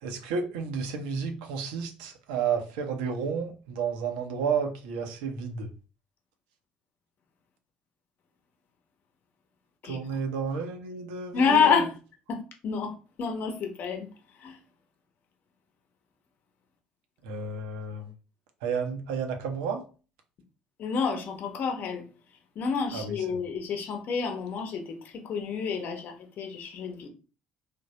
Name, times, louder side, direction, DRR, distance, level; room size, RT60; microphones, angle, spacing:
voice 1, 0.0-5.7 9.8-11.8 17.2-18.1 18.6-19.8 22.9-23.1, right 5 dB, 70° right, 0.5 m, -31 dB
voice 2, 11.3-11.9 12.3-14.1 14.4-14.6 20.8-22.0 22.6-27.1, left 6 dB, 50° left, 0.8 m, -28 dB
3.3 x 2.0 x 2.8 m
figure-of-eight pair, 55°, 4 cm